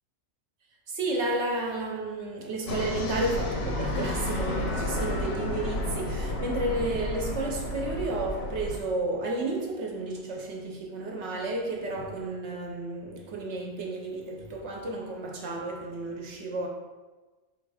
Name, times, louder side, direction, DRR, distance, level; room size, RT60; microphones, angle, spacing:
voice 1, 0.9-16.7, right 2 dB, 65° right, 0.8 m, -32 dB
sound 1, 2.7-8.8, left 1 dB, 55° left, 0.7 m, -31 dB
4.0 x 2.4 x 4.6 m
omnidirectional pair, 1.5 m